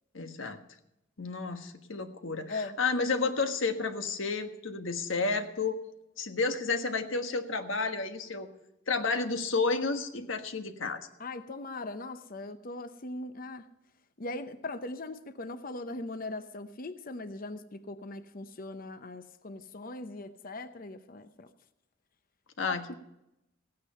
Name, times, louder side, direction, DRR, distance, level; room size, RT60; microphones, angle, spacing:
voice 1, 0.1-0.6 1.2-5.8 6.2-8.5 8.9-11.0 22.6-22.9, left 4 dB, 75° left, 7 dB, 1.4 m, -31 dB
voice 2, 11.2-13.7 14.2-21.5 22.6-22.9, left 2 dB, 45° left, 10 dB, 0.8 m, -40 dB
16.5 x 9.5 x 5.6 m, 0.87 s
head